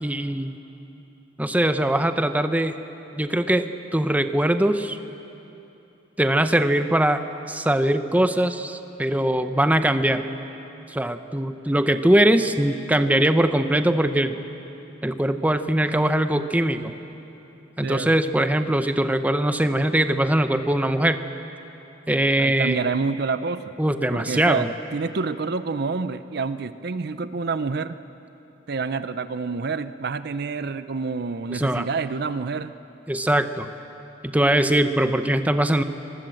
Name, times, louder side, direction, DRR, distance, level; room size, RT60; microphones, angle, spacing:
voice 1, 0.0-0.6 1.4-2.8 3.1-5.0 6.2-7.2 7.5-10.2 10.9-14.4 15.0-16.9 17.8-21.2 22.1-22.8 23.8-24.7 31.5-31.8 33.1-33.7 34.3-35.8, right 1 dB, 10° right, 9 dB, 0.7 m, -21 dB
voice 2, 17.8-18.3 22.4-23.7 24.1-28.0 28.7-32.7, right 4 dB, 60° right, 13 dB, 0.6 m, -28 dB
25.0 x 20.0 x 7.7 m, 3.0 s
head